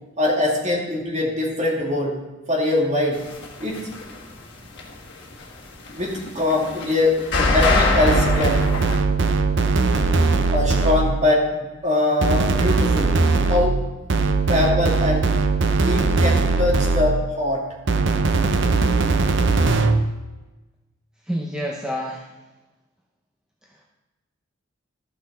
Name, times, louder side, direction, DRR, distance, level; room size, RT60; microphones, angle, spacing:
voice 1, 0.2-2.2 2.5-3.2 3.6-3.8 5.9-8.6 10.5-13.2 13.5-13.8 14.5-15.3 15.8-17.6, left 2 dB, 35° right, -3 dB, 2.3 m, -22 dB
sound 1, 3.2-4.3 4.6-9.0, left 2 dB, 60° left, 1.6 m, -22 dB
sound 2, 8.1-11.3 12.2-17.4 17.9-20.1, right 3 dB, 60° right, 0.7 m, -20 dB
voice 2, 21.2-22.3 23.6-23.8, equal, 5° right, -2 dB, 0.8 m, -29 dB
13.0 x 6.0 x 4.2 m, 1.1 s
head